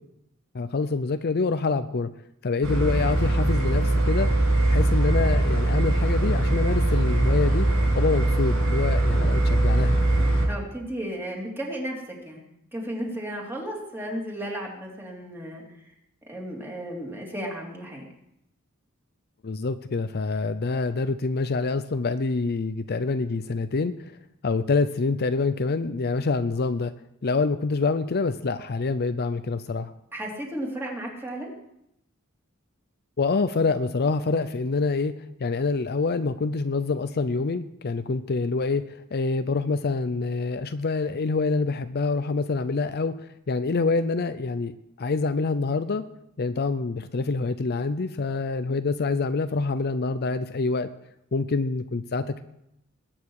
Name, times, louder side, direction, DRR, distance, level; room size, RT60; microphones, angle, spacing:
voice 1, 0.5-2.1 2.4-4.3 4.7-7.7 8.0-10.0 19.4-24.2 24.4-26.9 27.2-29.9 33.2-35.1 35.4-46.0 46.4-50.9 51.3-52.4, left 3 dB, 50° left, 11 dB, 0.5 m, -26 dB
sound 1, 2.6-10.5, right 1 dB, 75° right, 6.5 m, -21 dB
voice 2, 10.5-12.4 12.7-15.6 16.3-18.1 30.1-31.5, right 1 dB, 10° right, -1 dB, 3.1 m, -34 dB
21.0 x 8.9 x 4.8 m, 0.81 s
head